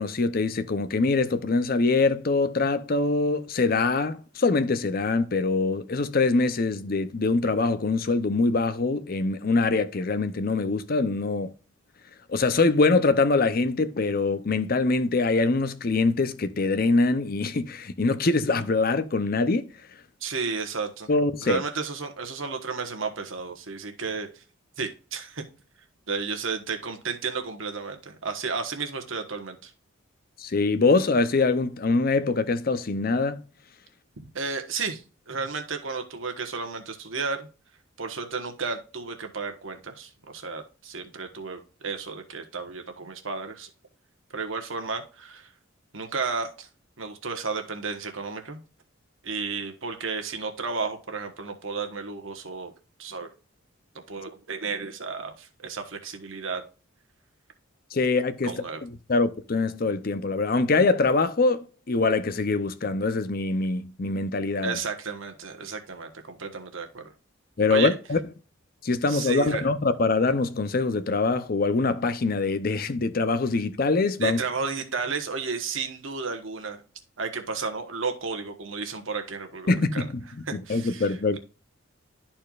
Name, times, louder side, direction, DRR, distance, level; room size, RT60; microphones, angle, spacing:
voice 1, 0.0-11.5 12.3-19.7 21.1-21.6 30.4-33.4 57.9-58.5 58.8-64.8 67.6-68.2 68.8-74.4 79.7-81.4, left 3 dB, 45° left, 0.6 m, -24 dB
voice 2, 20.2-21.1 21.4-24.4 24.8-25.4 26.1-29.7 34.3-37.5 38.0-43.7 44.3-45.5 45.9-46.7 47.0-48.6 49.2-52.7 53.0-53.3 54.1-56.6 58.4-58.8 64.6-67.1 67.7-67.9 69.1-69.6 74.2-76.8 77.2-80.0 80.5-81.4, right 5 dB, 75° right, 1.2 m, -33 dB
12.0 x 4.4 x 2.4 m
head